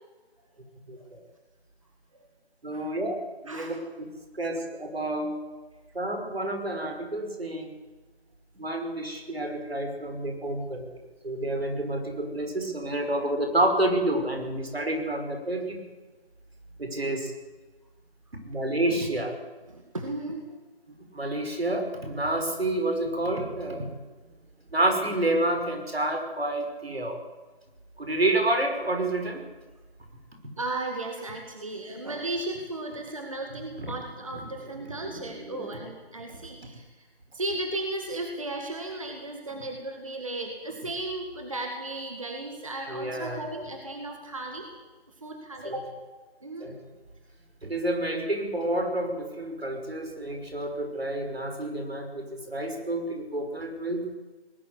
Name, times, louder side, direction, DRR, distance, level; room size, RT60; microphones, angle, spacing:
voice 1, 0.9-1.2 2.6-3.2 3.4-4.1 4.3-5.4 5.9-7.7 8.6-10.8 11.2-15.8 16.8-17.3 18.5-19.4 21.1-23.9 24.7-27.2 28.0-29.4 33.8-33.9 35.0-35.8 36.3-36.4 42.9-43.4 45.6-45.8 46.6-46.7 47.6-54.0, right 1 dB, 75° right, 4 dB, 5.6 m, -29 dB
voice 2, 19.7-20.5 30.6-36.8 37.3-44.7 45.2-45.9 46.4-46.7, right 2 dB, 35° right, 2 dB, 2.1 m, -35 dB
19.5 x 13.5 x 9.9 m, 1.2 s
figure-of-eight pair, 180°, 31 cm